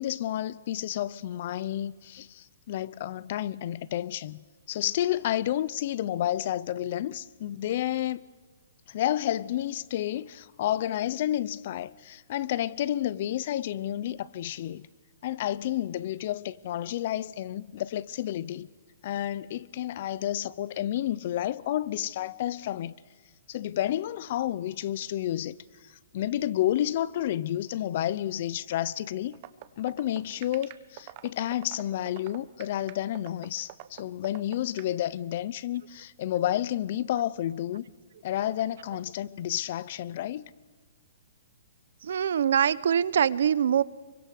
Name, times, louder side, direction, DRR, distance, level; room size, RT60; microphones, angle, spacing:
voice 1, 0.0-8.2 8.9-14.9 15.2-18.7 19.0-22.9 23.5-25.6 25.9-29.4 29.8-37.8 38.2-40.5, left 12 dB, 40° left, 0.6 m, -30 dB
sound 1, 29.3-34.9, right 17 dB, 30° right, 1.1 m, -43 dB
voice 2, 42.0-43.8, right 8 dB, 65° right, 0.7 m, -24 dB
25.5 x 24.0 x 6.5 m
hypercardioid pair, 170°, 0 cm